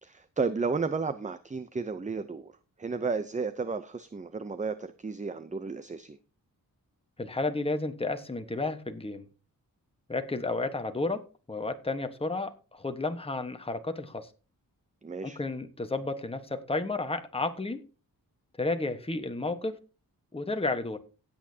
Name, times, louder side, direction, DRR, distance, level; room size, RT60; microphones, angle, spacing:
voice 1, 0.0-2.5 2.8-6.2 15.0-15.4, right 4 dB, 20° right, 0.6 m, -33 dB
voice 2, 7.2-9.2 10.1-11.2 11.5-14.3 15.2-17.8 18.6-19.8 20.3-21.0, left 2 dB, 15° left, 1.3 m, -32 dB
16.0 x 8.7 x 2.8 m
wide cardioid pair, 115°, 35 cm